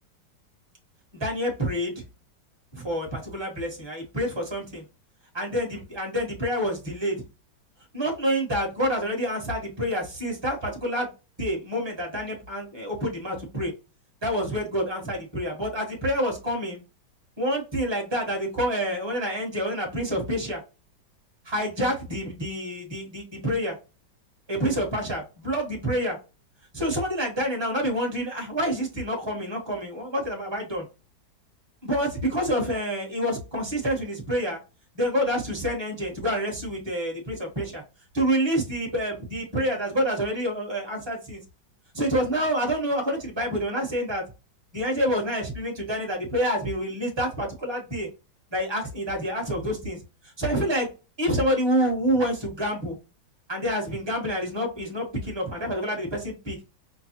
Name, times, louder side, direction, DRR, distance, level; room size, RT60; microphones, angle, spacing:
voice 1, 1.1-2.0 2.7-4.8 5.3-7.2 7.9-11.1 11.4-13.7 14.2-16.8 17.4-20.6 21.4-23.8 24.5-26.2 26.7-30.8 31.8-34.6 34.9-37.8 38.1-41.4 41.9-44.2 44.7-48.1 48.5-50.9 51.2-53.0 53.5-56.6, equal, 20° right, -1 dB, 0.9 m, -27 dB
5.5 x 2.2 x 2.8 m, 0.30 s
omnidirectional pair, 2.0 m